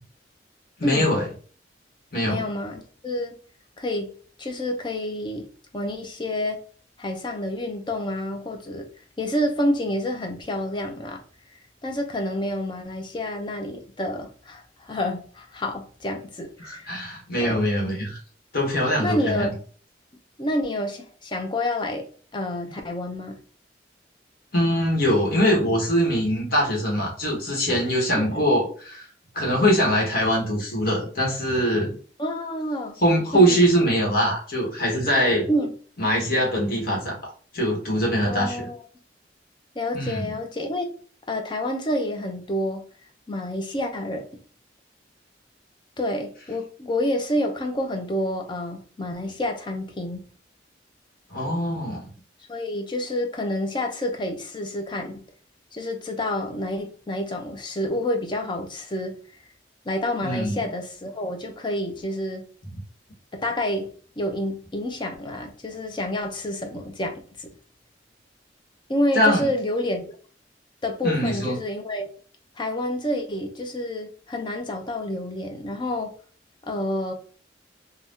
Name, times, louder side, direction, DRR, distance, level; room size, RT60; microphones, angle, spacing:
voice 1, 0.8-1.3 2.1-2.4 16.6-18.2 18.5-19.5 24.5-29.0 29.3-32.0 33.0-35.5 36.0-38.7 39.9-40.3 51.3-52.0 60.2-60.6 69.1-69.4 71.0-71.6, equal, 55° left, 1.2 m, -22 dB
voice 2, 2.3-3.4 3.8-4.1 4.4-5.5 5.7-6.6 7.0-8.9 9.2-11.2 11.8-16.9 17.3-17.6 19.0-19.5 20.4-22.1 22.3-23.4 28.2-28.4 32.2-32.9 33.3-33.6 35.5-35.7 38.2-38.8 39.8-40.9 41.3-42.8 43.3-44.3 46.0-50.3 52.5-55.2 55.7-59.2 59.9-62.5 63.3-63.9 64.2-67.5 68.9-70.2 70.8-72.1 72.6-76.2 76.7-77.1, left 1 dB, 25° left, 0.5 m, -28 dB
2.7 x 2.2 x 3.5 m
head